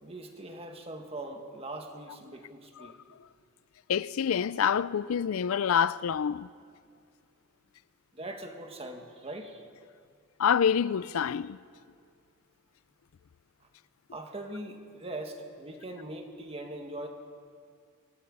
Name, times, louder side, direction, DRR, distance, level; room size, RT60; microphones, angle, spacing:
voice 1, 0.0-3.0 8.1-9.6 14.1-17.1, right 1 dB, 30° right, 1.8 m, -41 dB
voice 2, 3.9-6.5 10.4-11.6, left 8 dB, 80° left, 0.4 m, -27 dB
26.0 x 18.0 x 5.5 m
head